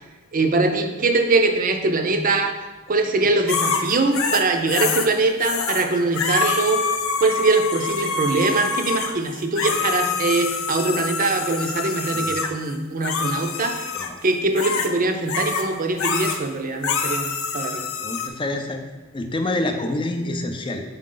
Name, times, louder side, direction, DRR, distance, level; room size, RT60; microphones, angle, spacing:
voice 1, 0.3-2.5 2.9-6.9 7.2-17.9, right 3 dB, 40° right, 5 dB, 0.6 m, -22 dB
sound 1, 3.5-5.1 5.4-5.9 6.1-12.5 13.0-14.1 14.6-14.9 15.3-15.7 16.0-16.4 16.8-18.3, left 5 dB, 80° left, 0.6 m, -26 dB
voice 2, 18.0-18.8 19.1-20.8, left 2 dB, 25° left, 5 dB, 0.5 m, -27 dB
6.3 x 4.6 x 3.8 m, 1.2 s
head